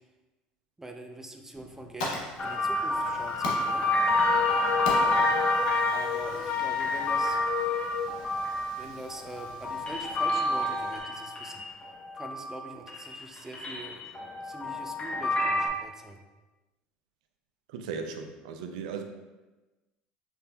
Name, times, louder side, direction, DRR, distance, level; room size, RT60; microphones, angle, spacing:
voice 1, 0.8-3.8 5.9-7.4 8.8-11.6 12.1-14.1 14.4-16.2, right 2 dB, 10° right, 3 dB, 0.5 m, -44 dB
Fire, 1.5-11.0, left 1 dB, 90° left, 1.0 m, -42 dB
sound 1, 2.4-12.6 12.9-15.7, left 1 dB, 30° left, 0.9 m, -29 dB
Wind instrument woodwind instrument, 4.2-8.1, left 10 dB, 50° left, 0.3 m, -31 dB
voice 2, 17.7-19.0, right 5 dB, 85° right, 6 dB, 0.5 m, -37 dB
5.8 x 3.3 x 2.3 m, 1.1 s
supercardioid pair, 90°, 4 cm